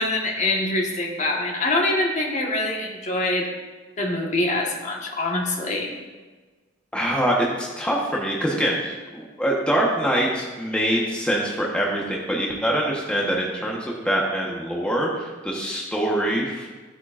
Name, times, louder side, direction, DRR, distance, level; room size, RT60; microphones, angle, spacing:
voice 1, 0.0-3.5 4.0-5.9, left 2 dB, 40° left, -1 dB, 1.5 m, -24 dB
voice 2, 6.9-16.7, right 1 dB, 5° left, -3 dB, 1.1 m, -24 dB
15.0 x 8.3 x 2.5 m, 1.3 s
head